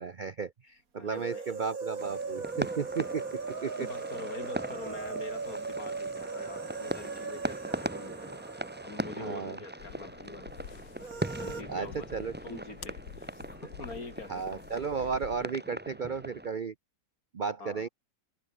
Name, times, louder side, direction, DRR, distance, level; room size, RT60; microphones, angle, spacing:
voice 1, 0.0-3.2 3.6-3.9 9.2-9.6 11.7-12.6 14.3-16.7 17.3-17.9, right 5 dB, 70° right, 0.4 m, -34 dB
voice 2, 1.0-1.5 3.8-10.5 11.4-12.1 12.4-14.7 17.6-17.9, left 3 dB, 50° left, 3.8 m, -45 dB
sound 1, 1.1-10.0 10.2-10.3 11.0-11.6, right 4 dB, 50° right, 3.1 m, -38 dB
sound 2, 2.0-16.5, right 1 dB, 5° right, 0.9 m, -40 dB
sound 3, 9.8-15.5, left 8 dB, 85° left, 2.2 m, -49 dB
omnidirectional pair, 1.9 m